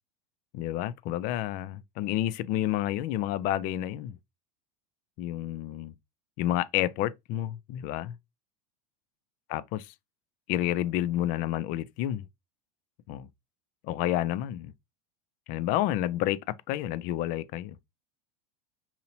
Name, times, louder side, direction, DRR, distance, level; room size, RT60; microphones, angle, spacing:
voice 1, 0.5-4.2 5.2-5.9 6.4-8.2 9.5-9.9 10.5-12.2 13.1-13.3 13.8-14.7 15.5-17.8, left 13 dB, 50° left, 0.4 m, -30 dB
4.1 x 2.8 x 2.7 m
supercardioid pair, 115°, 19 cm